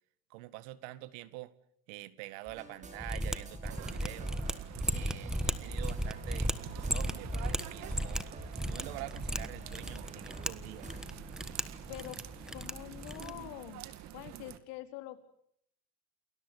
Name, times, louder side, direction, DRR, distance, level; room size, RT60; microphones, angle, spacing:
voice 1, 0.3-1.5 1.9-4.3 4.9-7.3 7.7-8.3 8.7-10.9, right 17 dB, 80° right, 16 dB, 1.8 m, -46 dB
sound 1, 2.5-11.3, right 3 dB, 20° right, 5.7 m, -48 dB
Mechanisms, 3.0-13.5, equal, ahead, 1.4 m, -36 dB
sound 2, 3.6-14.6, right 12 dB, 55° right, 2.3 m, -47 dB
voice 2, 12.5-13.8 14.1-15.2, left 15 dB, 80° left, 7 dB, 4.2 m, -45 dB
29.5 x 21.0 x 8.4 m, 0.71 s
cardioid pair, 130°, 34 cm